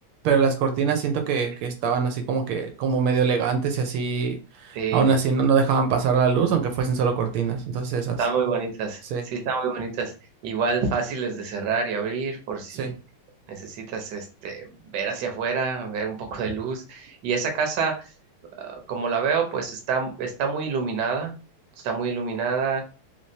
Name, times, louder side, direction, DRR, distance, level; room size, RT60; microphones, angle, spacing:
voice 1, 0.2-4.4 4.6-8.2 9.1-9.2 12.8-12.9, right 5 dB, 80° right, 5 dB, 1.5 m, -23 dB
voice 2, 4.7-5.1 8.2-10.1 10.4-12.9 13.5-18.1 18.6-21.3 21.8-22.8, right 5 dB, 60° right, 4 dB, 1.4 m, -27 dB
3.7 x 3.2 x 2.7 m, 0.33 s
omnidirectional pair, 2.3 m